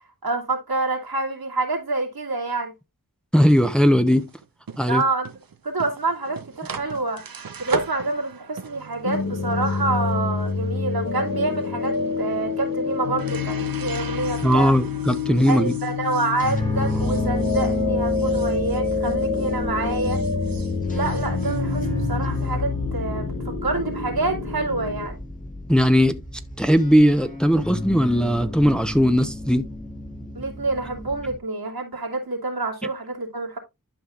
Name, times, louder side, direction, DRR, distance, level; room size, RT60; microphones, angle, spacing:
voice 1, 0.2-2.7 4.9-5.3 5.6-14.7 15.5-20.2 20.9-25.2 30.3-33.6, right 3 dB, 85° right, 2.5 m, -27 dB
voice 2, 3.3-4.3 4.8-5.0 14.4-15.7 25.7-26.2 26.6-29.7, equal, ahead, 0.8 m, -18 dB
sound 1, 3.4-19.6 19.9-22.5, right 5 dB, 70° right, 0.9 m, -39 dB
sound 2, 9.0-25.1, left 5 dB, 65° left, 1.1 m, -27 dB
sound 3, 16.4-31.4, left 1 dB, 20° left, 1.8 m, -31 dB
11.5 x 5.6 x 2.5 m
wide cardioid pair, 50°, 36 cm